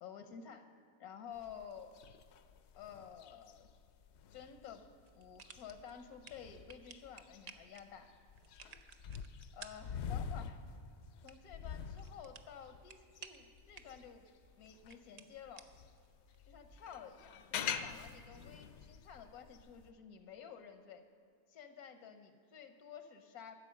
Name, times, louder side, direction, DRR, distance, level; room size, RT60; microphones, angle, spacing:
voice 1, 0.0-0.7 1.0-2.0 2.8-3.7 4.3-4.9 5.1-8.1 9.5-10.6 11.2-14.3 14.5-15.7 16.4-21.0 21.5-23.6, left 8 dB, 85° left, 8 dB, 1.3 m, -52 dB
Breath of cow, 1.4-15.0 15.5-19.9, left 7 dB, 65° left, 0.7 m, -46 dB
sound 1, 5.0-17.0, right 5 dB, 80° right, 0.3 m, -59 dB
12.5 x 8.2 x 6.4 m, 2.3 s
omnidirectional pair, 1.5 m